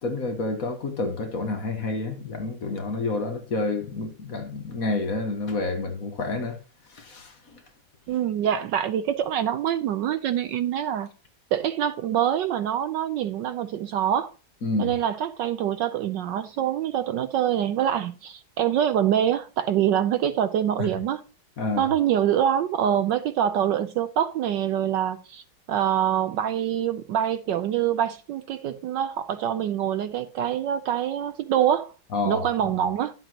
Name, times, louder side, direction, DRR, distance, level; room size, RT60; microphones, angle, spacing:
voice 1, 0.0-6.6 6.9-7.6 14.6-14.9 21.6-21.9 32.1-32.5, left 3 dB, 45° left, 1.6 m, -29 dB
voice 2, 8.1-11.1 11.5-14.3 14.8-21.2 21.8-25.4 25.7-31.9 32.2-33.1, right 10 dB, 75° right, 1.1 m, -25 dB
11.5 x 7.8 x 2.9 m
omnidirectional pair, 2.2 m